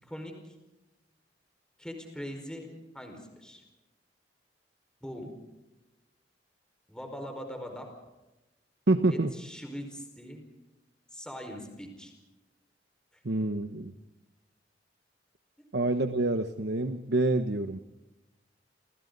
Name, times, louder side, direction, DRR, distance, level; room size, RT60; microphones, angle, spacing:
voice 1, 0.0-0.5 1.8-2.7 2.9-3.6 5.0-5.3 6.9-7.9 9.1-10.4 11.1-12.1, equal, 5° left, 3 dB, 4.9 m, -41 dB
voice 2, 8.9-9.3 13.2-13.9 15.7-17.8, right 2 dB, 65° right, 8 dB, 1.0 m, -27 dB
29.0 x 28.5 x 4.0 m, 1.0 s
head